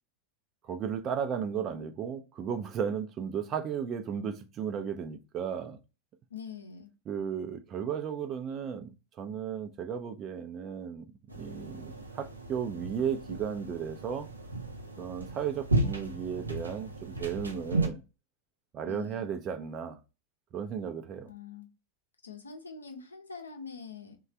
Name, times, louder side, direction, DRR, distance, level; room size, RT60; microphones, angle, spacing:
voice 1, 0.6-5.8 7.1-14.3 15.0-18.0 18.7-20.0 20.5-21.3, right 7 dB, 30° right, 0.5 m, -35 dB
voice 2, 6.3-6.9 18.8-19.3 21.3-21.7 22.2-24.2, left 6 dB, 75° left, 0.7 m, -44 dB
sound 1, 11.3-17.9, right 2 dB, 80° right, 0.6 m, -34 dB
3.2 x 2.3 x 4.2 m
figure-of-eight pair, 90°, 0 cm